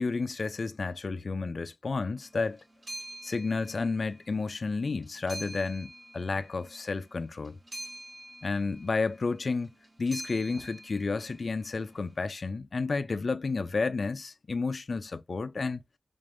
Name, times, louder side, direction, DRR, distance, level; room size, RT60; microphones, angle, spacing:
voice 1, 0.0-2.6 3.2-7.6 8.4-9.7 10.0-15.8, left 4 dB, 70° left, 0.3 m, -31 dB
sound 1, 2.2-12.2, right 1 dB, 40° right, 1.0 m, -46 dB
3.4 x 3.4 x 2.5 m
wide cardioid pair, 75°, 0 cm